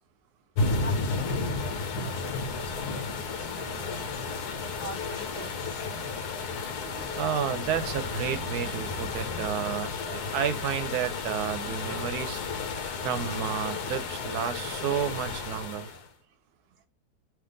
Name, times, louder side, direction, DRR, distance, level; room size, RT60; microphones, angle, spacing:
sound 1, 0.6-16.1, left 4 dB, 80° left, 1.4 m, -32 dB
voice 1, 0.8-1.6 2.2-4.1 4.8-5.8, equal, 45° left, 1.3 m, -44 dB
voice 2, 6.8-12.4 13.0-15.9, right 8 dB, 75° right, 1.1 m, -31 dB
3.6 x 3.1 x 3.8 m
omnidirectional pair, 1.7 m